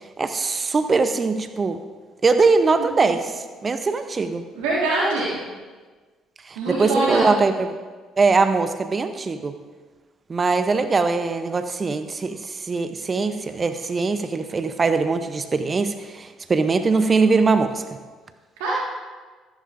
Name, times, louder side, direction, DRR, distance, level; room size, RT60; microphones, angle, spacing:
voice 1, 0.2-1.8 2.2-4.4 6.5-7.7 8.2-9.5 10.3-17.8, right 4 dB, 35° right, 9 dB, 0.7 m, -21 dB
voice 2, 2.6-3.1 4.5-5.4 6.5-7.3 18.6-18.7, right 2 dB, 75° right, -6 dB, 1.7 m, -24 dB
13.5 x 11.5 x 2.5 m, 1.4 s
hypercardioid pair, 50°, 0 cm